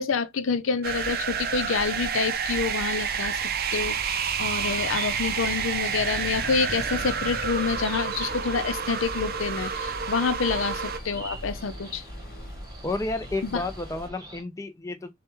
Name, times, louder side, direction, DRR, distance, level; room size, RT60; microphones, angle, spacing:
voice 1, 0.0-3.4 3.7-12.0 13.5-13.6, left 5 dB, 80° left, 0.7 m, -28 dB
sound 1, 0.8-14.1, left 1 dB, 50° left, 0.9 m, -40 dB
sound 2, 0.8-11.0, right 7 dB, 50° right, 0.5 m, -29 dB
sound 3, 3.1-14.4, right 2 dB, 20° right, 1.2 m, -44 dB
voice 2, 12.8-15.1, left 2 dB, 15° left, 0.5 m, -31 dB
6.7 x 2.3 x 3.0 m
head